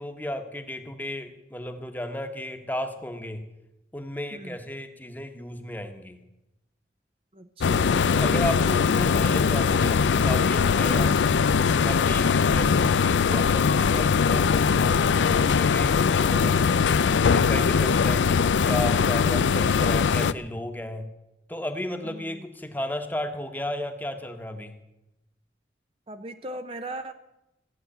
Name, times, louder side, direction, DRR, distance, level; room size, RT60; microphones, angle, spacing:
voice 1, 0.0-3.4 3.9-6.2 8.1-11.2 11.8-16.0 16.3-16.8 17.2-21.1 21.5-24.7, left 1 dB, 10° left, 7 dB, 1.1 m, -34 dB
voice 2, 7.3-8.0 22.0-22.4 26.1-27.1, right 1 dB, 30° right, 8 dB, 0.6 m, -38 dB
sound 1, 7.6-20.3, left 6 dB, 85° left, 0.5 m, -21 dB
15.5 x 7.9 x 9.9 m, 0.95 s
head